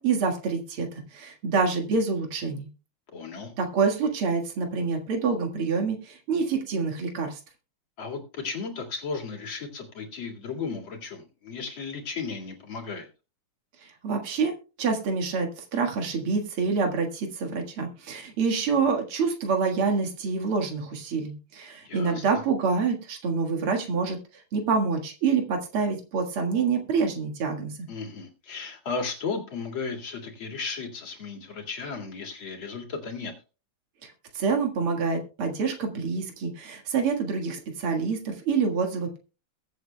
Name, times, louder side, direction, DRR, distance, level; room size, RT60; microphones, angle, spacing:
voice 1, 0.0-2.7 3.6-7.4 13.8-27.9 34.0-39.2, right 5 dB, 80° right, 3 dB, 2.6 m, -27 dB
voice 2, 3.1-3.5 8.0-13.1 21.8-22.2 27.9-33.3, left 4 dB, 65° left, 2 dB, 2.9 m, -35 dB
21.5 x 7.8 x 2.2 m, 0.33 s
omnidirectional pair, 2.4 m